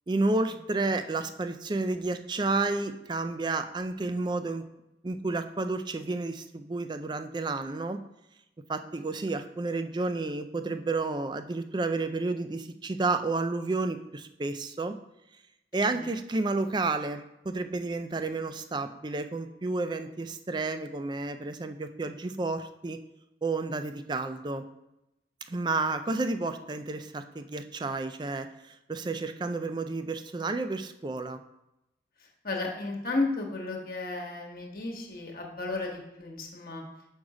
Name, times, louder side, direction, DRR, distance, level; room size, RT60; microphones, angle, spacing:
voice 1, 0.1-4.6 5.0-8.0 8.7-14.9 15.7-23.0 23.4-24.6 25.5-31.4, right 3 dB, 25° right, 9 dB, 0.4 m, -31 dB
voice 2, 32.4-36.8, left 2 dB, 55° left, 1 dB, 1.2 m, -33 dB
6.3 x 5.2 x 4.8 m, 0.91 s
head